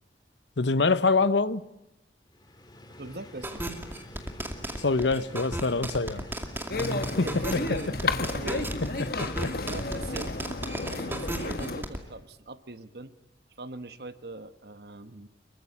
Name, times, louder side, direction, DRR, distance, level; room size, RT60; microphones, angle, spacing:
voice 1, 0.6-1.6 4.7-6.2 7.2-7.6 9.2-9.5, left 3 dB, 80° left, 0.9 m, -25 dB
sound 1, 2.3-12.3, left 1 dB, 25° left, 2.2 m, -48 dB
voice 2, 3.0-3.7 7.1-8.7 9.4-10.4 10.9-13.1 13.6-15.3, right 2 dB, 60° right, 1.2 m, -41 dB
sound 2, 3.4-12.0, right 1 dB, 10° right, 2.2 m, -34 dB
sound 3, 6.7-11.8, left 3 dB, 55° left, 1.2 m, -32 dB
25.0 x 22.5 x 8.7 m
head